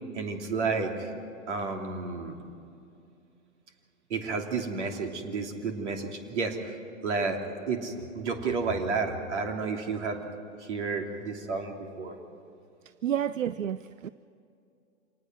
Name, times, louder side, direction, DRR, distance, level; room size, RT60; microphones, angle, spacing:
voice 1, 0.1-1.1 1.5-2.4 4.1-10.2 10.6-12.2, right 4 dB, 60° right, 3 dB, 3.1 m, -31 dB
voice 2, 13.0-14.1, right 10 dB, 80° right, 16 dB, 0.6 m, -30 dB
26.5 x 19.5 x 6.2 m, 2.6 s
figure-of-eight pair, 110°, 39 cm